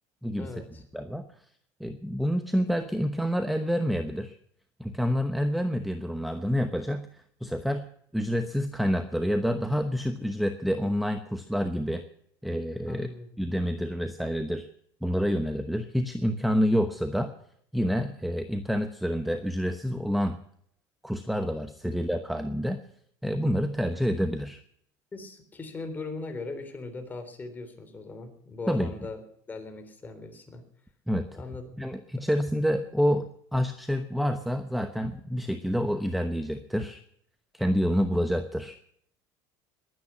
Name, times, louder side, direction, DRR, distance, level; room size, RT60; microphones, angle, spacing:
voice 1, 0.4-0.8 12.9-13.3 21.8-21.9 25.1-29.2 29.5-30.7 31.4-31.6 32.2-32.3, left 3 dB, 20° left, 6 dB, 3.5 m, -39 dB
voice 2, 0.9-1.3 1.8-4.3 4.8-7.1 7.4-7.9 8.1-12.0 12.4-13.1 13.4-14.7 15.0-17.3 17.7-20.4 21.0-22.8 23.2-24.6 28.7-28.9 31.1-31.3 31.8-37.0 37.5-38.8, equal, ahead, 8 dB, 1.0 m, -28 dB
21.5 x 9.6 x 5.7 m, 0.67 s
cardioid pair, 130°, 9 cm